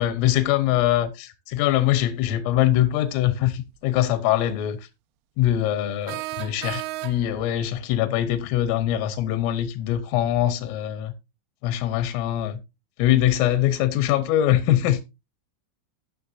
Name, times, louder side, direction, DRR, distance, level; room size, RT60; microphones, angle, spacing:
voice 1, 0.0-4.9 5.4-11.1 11.6-12.6 13.0-15.0, left 12 dB, 85° left, 3.3 m, -23 dB
sound 1, 3.8-3.9 6.1-7.5, right 18 dB, 85° right, 3.3 m, -33 dB
16.5 x 6.1 x 2.5 m
omnidirectional pair, 5.9 m